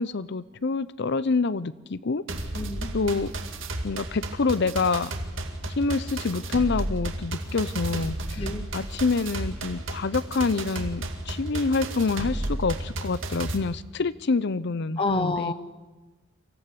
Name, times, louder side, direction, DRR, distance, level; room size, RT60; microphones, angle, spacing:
voice 1, 0.0-2.2 2.9-3.3 3.8-5.1 5.8-8.5 8.7-15.5, left 4 dB, 55° left, 17 dB, 0.6 m, -27 dB
sound 1, 2.3-13.6, right 1 dB, 65° right, 2.1 m, -33 dB
voice 2, 2.5-2.9 8.4-8.6 15.0-15.5, left 3 dB, 25° left, 9 dB, 1.1 m, -28 dB
24.5 x 14.5 x 8.3 m, 1.2 s
head